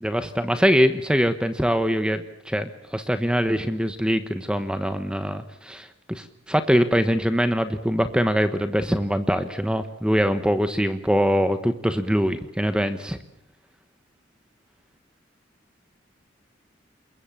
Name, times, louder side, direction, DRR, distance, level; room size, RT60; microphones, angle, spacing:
voice 1, 0.0-13.2, equal, 5° right, 10 dB, 1.1 m, -23 dB
28.0 x 22.0 x 7.2 m, 0.75 s
head